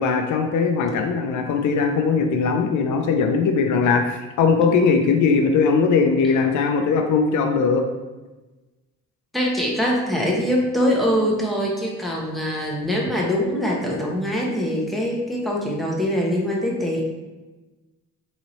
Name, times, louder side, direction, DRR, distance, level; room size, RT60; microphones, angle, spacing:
voice 1, 0.0-7.8, left 5 dB, 75° left, 4 dB, 0.5 m, -20 dB
voice 2, 9.3-17.0, equal, ahead, -3 dB, 0.8 m, -23 dB
4.0 x 2.7 x 3.0 m, 1.1 s
cardioid pair, 90°, 30 cm